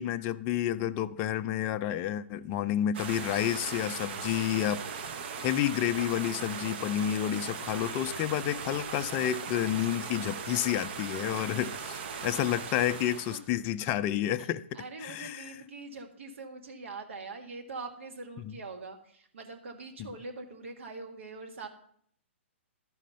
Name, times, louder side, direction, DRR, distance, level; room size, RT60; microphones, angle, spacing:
voice 1, 0.0-4.8 5.4-14.6 15.0-15.5, left 11 dB, 30° left, 0.4 m, -30 dB
sound 1, 2.9-13.4, right 6 dB, 55° right, 0.9 m, -38 dB
voice 2, 14.7-21.7, right 3 dB, 70° right, 1.6 m, -43 dB
12.5 x 5.0 x 5.5 m
hypercardioid pair, 125°, 7 cm